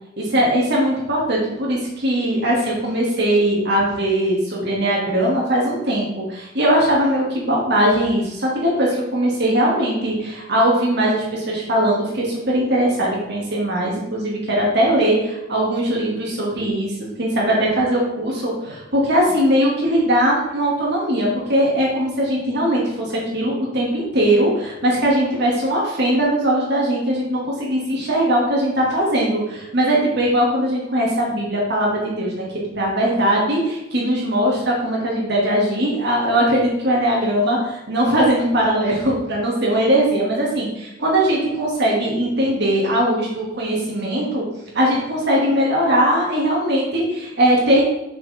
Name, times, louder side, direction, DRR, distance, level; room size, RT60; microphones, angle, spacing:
voice 1, 0.2-16.9 17.2-32.5 32.7-44.4 44.7-47.8, right 1 dB, 60° right, -4 dB, 2.3 m, -20 dB
6.9 x 6.6 x 3.6 m, 0.92 s
head